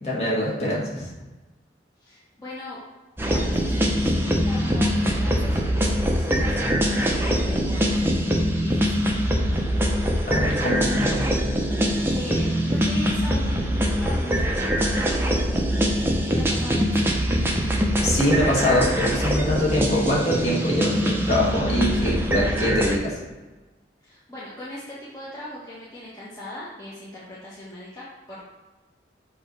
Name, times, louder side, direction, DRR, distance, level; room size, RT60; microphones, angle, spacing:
voice 1, 0.0-1.1 10.3-11.3 18.0-23.2, left 1 dB, 35° left, -5 dB, 1.8 m, -24 dB
voice 2, 2.0-2.8 3.2-8.0 8.6-9.1 12.0-15.6 16.3-17.1 24.0-28.5, left 1 dB, 20° left, -9 dB, 1.3 m, -39 dB
sound 1, 3.2-23.0, equal, 15° right, 0.7 m, -23 dB
6.8 x 3.1 x 5.4 m, 1.2 s
head